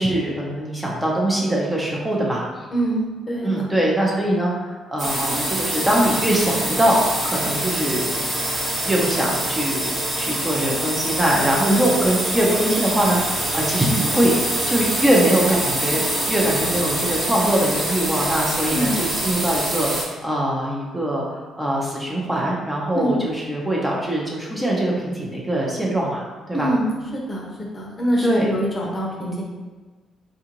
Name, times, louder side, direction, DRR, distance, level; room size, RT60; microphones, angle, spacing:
voice 1, 0.0-2.4 3.4-7.0 7.2-8.1 8.9-9.9 10.2-26.2 26.5-26.7 28.2-28.5, right 1 dB, 10° right, -3 dB, 0.7 m, -22 dB
voice 2, 2.7-3.7 11.7-11.9 18.7-18.9 22.9-23.1 26.5-29.4, right 1 dB, 30° left, -3 dB, 0.7 m, -24 dB
sound 1, 5.0-20.0, right 1 dB, 60° right, 1.4 m, -25 dB
3.7 x 2.4 x 2.9 m, 1.3 s
cardioid pair, 90°, 0 cm